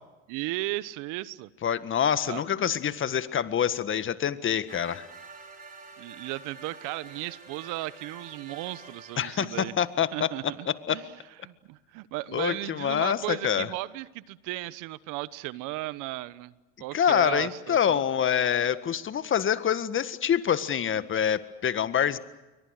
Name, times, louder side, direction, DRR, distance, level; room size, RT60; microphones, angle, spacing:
voice 1, 0.3-1.5 2.2-2.4 6.0-9.7 10.1-16.5 16.8-18.0, right 18 dB, 65° right, 17 dB, 1.2 m, -35 dB
voice 2, 1.6-5.1 9.2-10.3 10.9-11.0 12.3-13.7 16.9-22.2, left 8 dB, 35° left, 13 dB, 1.7 m, -26 dB
sound 1, 4.7-10.6, right 4 dB, 25° right, 6.0 m, -48 dB
29.0 x 23.5 x 6.6 m, 1.1 s
hypercardioid pair, 85°, 34 cm